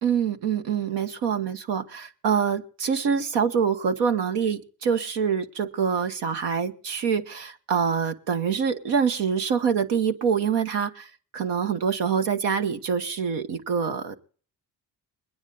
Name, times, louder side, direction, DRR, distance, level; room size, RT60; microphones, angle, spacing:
voice 1, 0.0-14.2, right 6 dB, 85° right, 7 dB, 1.4 m, -25 dB
22.0 x 9.8 x 3.9 m, 0.43 s
supercardioid pair, 55°, 41 cm